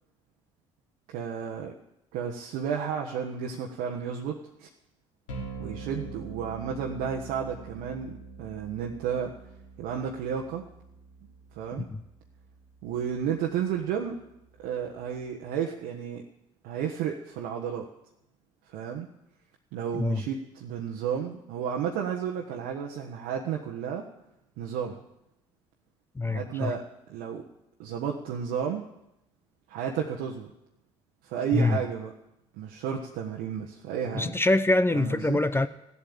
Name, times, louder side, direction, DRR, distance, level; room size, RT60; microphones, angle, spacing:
voice 1, 1.1-1.7 2.1-4.7 5.6-9.3 9.8-10.6 11.5-11.9 12.8-14.2 14.6-16.2 16.6-17.8 18.7-19.1 19.7-24.1 24.6-25.0 26.2-26.8 27.1-27.4 27.8-28.8 29.7-30.5 31.2-32.1 32.6-34.3 34.9-35.4, right 8 dB, 70° right, 1.3 m, -32 dB
sound 1, 5.3-15.3, right 4 dB, 85° left, 3.6 m, -45 dB
voice 2, 19.9-20.2 26.2-26.7 31.5-31.8 34.1-35.7, left 2 dB, 15° left, 0.8 m, -25 dB
15.0 x 8.3 x 8.7 m
hypercardioid pair, 60°, 16 cm